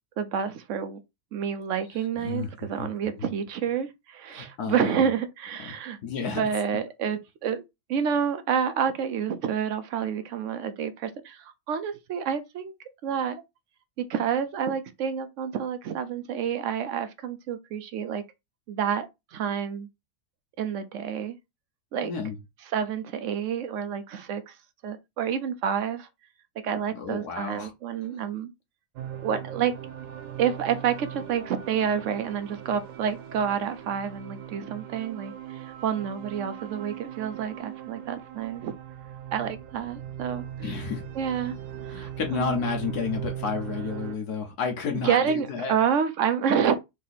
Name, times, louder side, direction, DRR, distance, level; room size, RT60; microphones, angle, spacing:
voice 1, 0.2-1.0 1.3-6.0 6.2-7.6 7.9-12.7 13.0-13.4 14.0-18.2 18.7-19.9 20.6-21.4 21.9-22.1 22.6-24.6 24.8-26.1 26.6-28.5 29.2-29.7 30.4-38.7 39.3-40.9 41.1-41.6 41.8-42.6 44.9-46.8, right 7 dB, 65° right, 0.8 m, -29 dB
voice 2, 2.2-2.9 3.2-3.3 4.3-5.1 5.6-5.7 6.0-6.4 22.0-22.4 26.9-27.7 40.6-41.0 41.9-45.8, left 5 dB, 75° left, 1.4 m, -31 dB
sound 1, 28.9-44.2, right 10 dB, 90° right, 1.3 m, -39 dB
3.6 x 2.8 x 4.0 m
omnidirectional pair, 1.7 m